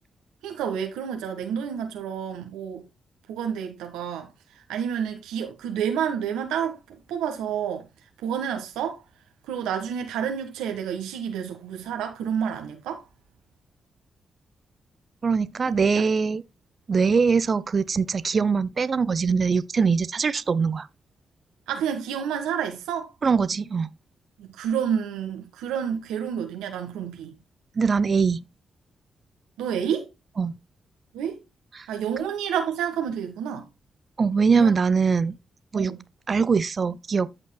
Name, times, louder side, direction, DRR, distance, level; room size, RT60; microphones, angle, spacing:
voice 1, 0.4-2.9 3.3-4.3 4.7-7.8 8.2-9.0 9.4-13.0 15.7-15.8 21.7-23.1 24.4-27.3 29.6-30.1 31.1-31.4 31.9-33.6 34.5-34.7 35.7-36.0, right 8 dB, 90° right, 1.5 m, -29 dB
voice 2, 15.2-16.4 16.9-20.9 23.2-23.9 27.8-28.4 30.4-30.5 31.8-31.9 34.2-35.3 35.7-35.9 36.3-37.3, right 5 dB, 50° right, 0.7 m, -22 dB
14.5 x 5.4 x 2.2 m
supercardioid pair, 45°, 0 cm